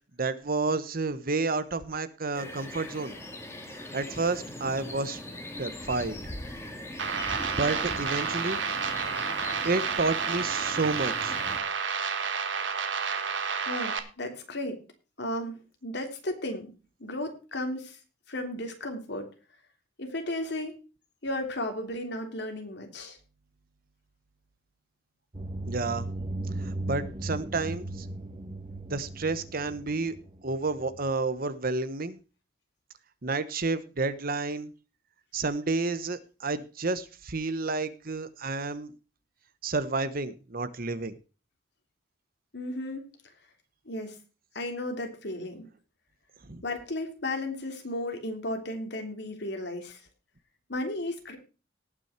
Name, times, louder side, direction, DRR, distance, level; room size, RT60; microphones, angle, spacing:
voice 1, 0.2-3.1 3.9-5.2 5.6-6.2 7.6-8.6 9.6-11.4 25.7-26.1 26.6-28.1 28.9-30.1 30.4-32.2 33.2-34.7 35.3-38.9 39.6-41.2 46.5-46.6, right 3 dB, 50° right, 13 dB, 1.1 m, -30 dB
sound 1, 2.3-11.6, left 1 dB, 15° left, 2.2 m, -40 dB
sound 2, 7.0-14.0, right 5 dB, 75° right, 1.6 m, -30 dB
voice 2, 13.7-14.8 15.2-16.7 17.0-18.0 18.3-19.3 20.0-20.8 21.2-23.2 42.5-43.1 43.8-44.2 44.5-45.7 46.6-50.0 50.7-51.4, left 1 dB, 65° left, 4 dB, 3.1 m, -34 dB
sound 3, 25.3-31.1, right 2 dB, 30° right, 1.2 m, -37 dB
18.5 x 6.2 x 4.4 m, 0.33 s
head